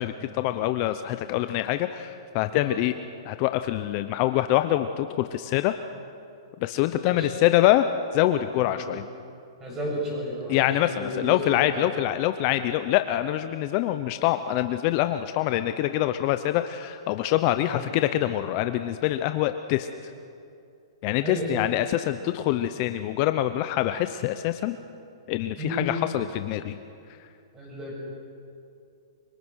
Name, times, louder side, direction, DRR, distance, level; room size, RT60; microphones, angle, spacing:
voice 1, 0.0-3.0 3.2-5.7 6.6-7.9 8.1-9.0 10.5-19.9 21.0-24.8 25.3-26.8 27.2-27.3, left 14 dB, 35° left, 10 dB, 0.7 m, -25 dB
voice 2, 6.9-7.3 8.6-8.9 9.6-11.4 11.7-11.9 17.7-17.9 21.2-21.6 25.6-25.9 27.5-28.0, equal, 15° right, -2 dB, 7.9 m, -33 dB
29.5 x 24.5 x 6.4 m, 2.6 s
hypercardioid pair, 160°, 3 cm